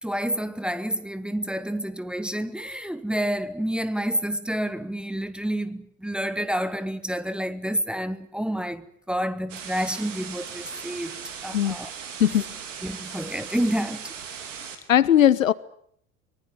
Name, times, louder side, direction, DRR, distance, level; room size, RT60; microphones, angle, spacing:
voice 1, 0.0-11.2 11.4-11.9 12.8-14.1, equal, ahead, 1.2 m, -29 dB
sound 1, 9.5-14.8, right 7 dB, 65° right, 4.1 m, -38 dB
voice 2, 14.9-15.5, left 10 dB, 70° left, 1.0 m, -18 dB
24.0 x 21.0 x 9.2 m
figure-of-eight pair, 75°, 41 cm